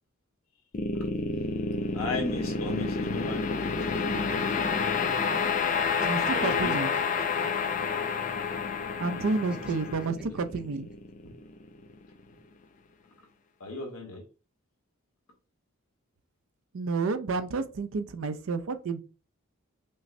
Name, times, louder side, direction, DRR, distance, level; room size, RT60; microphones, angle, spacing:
sound 1, 0.7-11.9, left 5 dB, 35° left, 0.3 m, -29 dB
voice 1, 1.9-3.5 6.3-6.7 13.6-14.2, left 3 dB, 75° left, 1.2 m, -35 dB
sound 2, 3.6-5.3 5.6-7.8 9.5-10.9, equal, 5° right, 0.6 m, -44 dB
voice 2, 6.0-6.9 9.0-10.9 16.7-19.0, right 4 dB, 65° right, 0.5 m, -30 dB
5.3 x 2.1 x 2.6 m
head